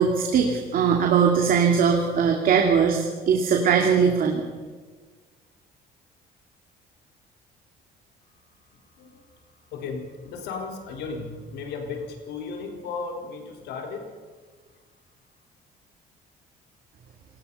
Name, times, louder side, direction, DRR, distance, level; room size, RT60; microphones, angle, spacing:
voice 1, 0.0-4.4, right 6 dB, 60° right, 2 dB, 2.7 m, -20 dB
voice 2, 9.7-14.1, left 4 dB, 80° left, 3 dB, 4.2 m, -35 dB
28.5 x 18.5 x 5.6 m, 1.4 s
cardioid pair, 110°, 17 cm